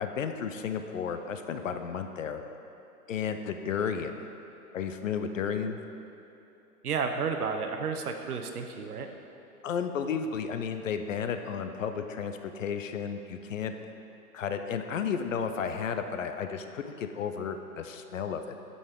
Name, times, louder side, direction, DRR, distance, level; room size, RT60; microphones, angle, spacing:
voice 1, 0.0-2.4 3.1-4.3 4.7-5.8 9.6-13.7 14.3-18.6, left 7 dB, 55° left, 7 dB, 0.5 m, -33 dB
voice 2, 6.8-9.1, right 5 dB, 65° right, 5 dB, 0.8 m, -32 dB
7.2 x 5.5 x 5.0 m, 2.9 s
hypercardioid pair, 130°, 48 cm